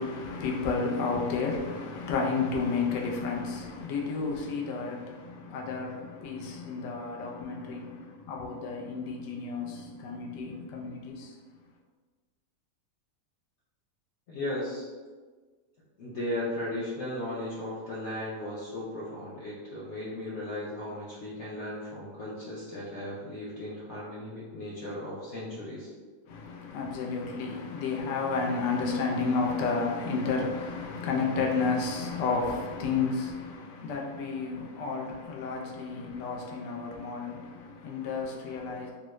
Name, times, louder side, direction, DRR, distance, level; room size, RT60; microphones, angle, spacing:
voice 1, 0.0-11.3 26.3-38.9, left 4 dB, 85° left, 1.2 m, -31 dB
voice 2, 14.3-14.9 16.0-25.9, left 1 dB, 70° left, 0.6 m, -36 dB
3.6 x 2.1 x 3.0 m
omnidirectional pair, 1.8 m